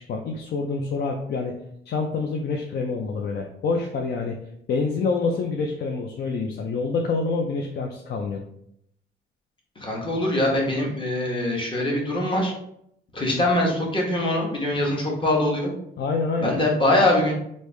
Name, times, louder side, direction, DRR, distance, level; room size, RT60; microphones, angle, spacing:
voice 1, 0.0-1.5 1.9-4.4 4.7-8.5 16.0-16.6, left 4 dB, 55° left, 2 dB, 0.5 m, -27 dB
voice 2, 9.8-12.5 13.1-15.7 16.4-17.3, left 1 dB, 25° left, -2 dB, 1.1 m, -23 dB
3.3 x 2.6 x 3.2 m, 0.74 s
cardioid pair, 90°, 20 cm